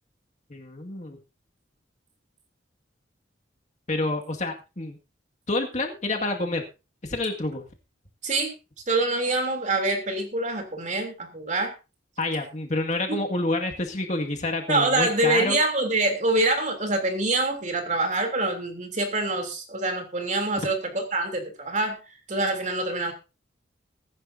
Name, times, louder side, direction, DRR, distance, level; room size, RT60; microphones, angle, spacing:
voice 1, 0.5-1.2 3.9-5.0 5.5-6.6 7.0-7.6 12.2-15.6, left 2 dB, 40° left, 2 dB, 2.0 m, -28 dB
voice 2, 8.9-11.7 14.7-22.0 22.3-23.1, right 2 dB, 40° right, 4 dB, 3.2 m, -25 dB
21.5 x 10.5 x 2.7 m, 0.29 s
head